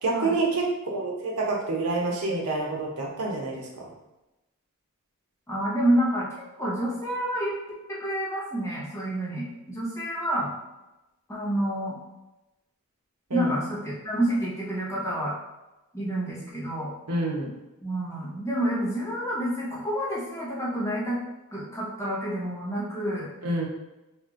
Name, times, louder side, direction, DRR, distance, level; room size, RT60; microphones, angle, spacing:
voice 1, 0.0-0.6 0.9-3.9 13.3-13.5 17.1-17.5 23.4-23.7, right 2 dB, 85° right, -2 dB, 0.8 m, -27 dB
voice 2, 5.5-6.2 6.6-7.5 8.0-10.5 11.3-12.0 13.3-15.4 15.9-16.9 17.8-21.2 21.5-23.3, right 1 dB, 15° left, -7 dB, 0.9 m, -28 dB
3.0 x 2.4 x 3.6 m, 0.99 s
head